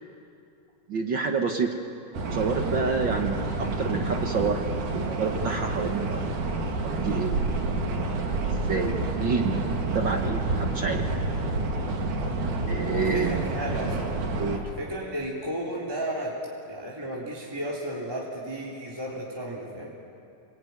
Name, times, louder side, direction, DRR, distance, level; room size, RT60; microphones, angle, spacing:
voice 1, 0.9-1.8 2.3-6.2 6.8-7.4 8.5-9.6 9.9-11.0 12.7-13.4 14.4-14.6, right 4 dB, 50° right, 4 dB, 1.6 m, -28 dB
sound 1, 2.1-14.6, right 2 dB, 75° right, 3.7 m, -29 dB
voice 2, 12.8-14.1 14.5-16.4 16.7-19.9, right 1 dB, 10° right, -4 dB, 3.1 m, -33 dB
28.0 x 21.5 x 9.6 m, 2.5 s
omnidirectional pair, 3.5 m